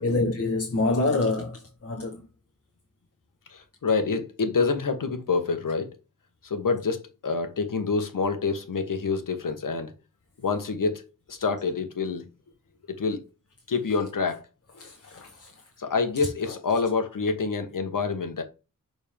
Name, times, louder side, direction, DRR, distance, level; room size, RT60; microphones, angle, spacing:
voice 1, 0.0-2.2 14.8-15.5 16.5-16.6, left 2 dB, 50° left, 1.2 m, -27 dB
voice 2, 3.5-5.9 6.4-9.9 10.4-12.3 12.9-13.2 13.7-14.4 14.7-14.8 15.8-18.4, left 4 dB, 85° left, 1.4 m, -27 dB
6.8 x 4.0 x 3.6 m
wide cardioid pair, 115°, 31 cm